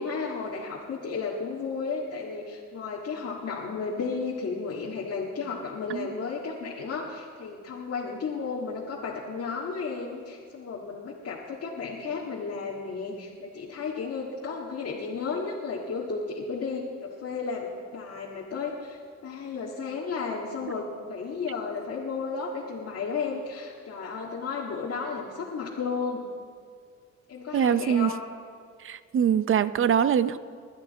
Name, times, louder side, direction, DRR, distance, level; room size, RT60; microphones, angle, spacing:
voice 1, 0.0-26.2 27.3-28.2, left 4 dB, 55° left, -4 dB, 1.8 m, -33 dB
voice 2, 27.5-28.1 28.8-30.4, right 8 dB, 45° right, 14 dB, 0.6 m, -23 dB
21.5 x 11.0 x 4.2 m, 2.1 s
cardioid pair, 90°, 30 cm